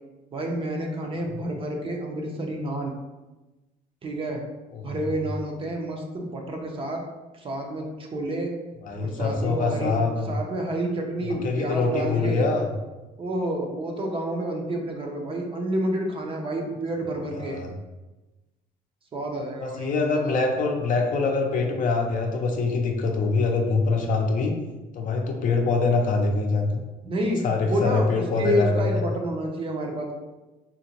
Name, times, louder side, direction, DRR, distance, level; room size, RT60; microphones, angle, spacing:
voice 1, 0.3-2.9 4.0-4.4 4.8-7.0 7.3-8.5 9.0-9.9 10.3-12.5 13.2-17.6 19.1-20.7 27.0-30.2, right 1 dB, 30° right, 1 dB, 0.5 m, -29 dB
voice 2, 4.7-5.2 8.8-10.3 11.2-12.7 17.3-17.7 19.6-24.5 24.9-26.7 27.4-29.0, left 3 dB, 50° left, 2 dB, 0.5 m, -24 dB
3.8 x 2.1 x 2.8 m, 1.1 s
cardioid pair, 110°, 17 cm